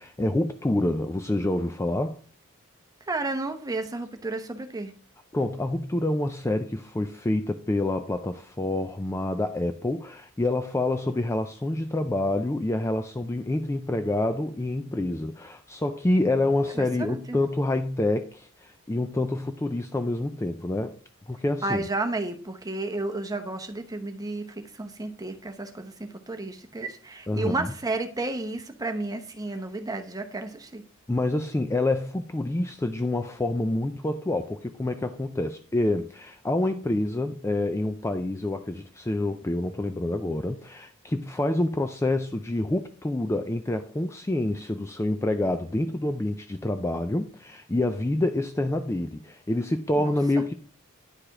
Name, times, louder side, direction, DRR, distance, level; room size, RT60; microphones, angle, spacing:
voice 1, 0.0-2.2 5.3-21.0 21.3-21.8 27.3-27.7 31.1-50.5, left 2 dB, 15° left, 0.3 m, -27 dB
voice 2, 3.1-4.9 16.7-17.4 21.6-30.8 50.0-50.4, right 2 dB, 15° right, 0.8 m, -32 dB
10.0 x 4.9 x 3.7 m
head